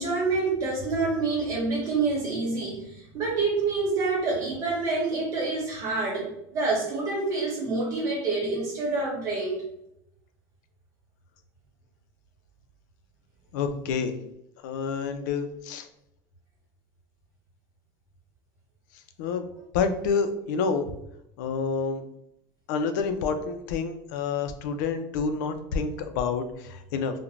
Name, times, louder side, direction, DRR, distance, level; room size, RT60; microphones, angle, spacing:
voice 1, 0.0-9.6, right 3 dB, 35° right, -2 dB, 1.1 m, -27 dB
voice 2, 13.5-14.2 14.6-15.9 19.2-19.5 19.7-20.9 21.4-22.0 22.7-27.2, left 5 dB, 85° left, 8 dB, 0.4 m, -28 dB
2.4 x 2.1 x 3.0 m, 0.79 s
cardioid pair, 160°, 10 cm